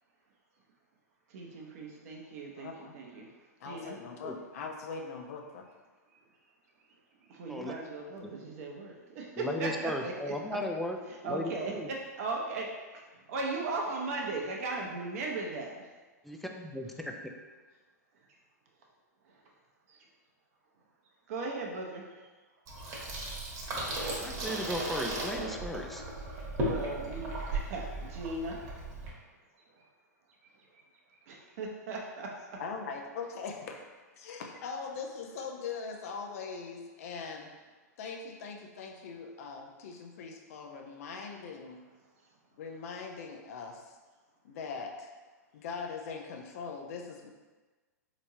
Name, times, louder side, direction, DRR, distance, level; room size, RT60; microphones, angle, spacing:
voice 1, 1.3-3.3 3.6-4.0 7.3-10.3 11.1-11.7 12.2-12.7 13.3-15.9 19.3-19.4 19.9-20.0 21.3-22.3 23.3-23.4 26.6-28.6 31.1-32.6, right 3 dB, 55° right, -1 dB, 0.7 m, -37 dB
voice 2, 2.6-3.0 3.6-5.7 32.6-33.9 34.2-37.5 38.0-41.8 42.6-44.0 44.4-45.1 45.5-47.3, left 5 dB, 55° left, 2 dB, 0.6 m, -41 dB
voice 3, 9.4-11.9 16.2-17.1 24.2-26.0, left 1 dB, ahead, 2 dB, 0.3 m, -36 dB
Water tap faucet / Sink (filling or washing), 22.7-29.1, right 1 dB, 40° right, 1.1 m, -36 dB
4.3 x 3.0 x 2.7 m, 1.3 s
figure-of-eight pair, 105°, 9 cm